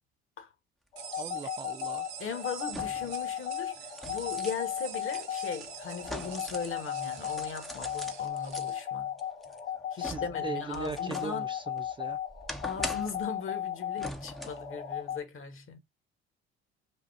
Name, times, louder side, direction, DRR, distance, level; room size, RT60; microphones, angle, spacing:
sound 1, 0.9-15.2, left 10 dB, 75° left, 1.4 m, -36 dB
sound 2, 1.0-8.8, right 10 dB, 60° right, 0.8 m, -46 dB
voice 1, 1.2-2.1 10.0-12.2, right 4 dB, 15° right, 0.3 m, -39 dB
sound 3, 1.4-1.5 2.7-3.2 3.6-6.8 7.1-8.7 9.2-11.4 11.8-13.3 14.0-14.7 15.1-15.2, equal, ahead, 0.9 m, -42 dB
voice 2, 2.2-9.1 9.9-11.5 12.6-15.8, left 6 dB, 40° left, 1.5 m, -38 dB
5.3 x 2.4 x 2.7 m
figure-of-eight pair, 55°, 33 cm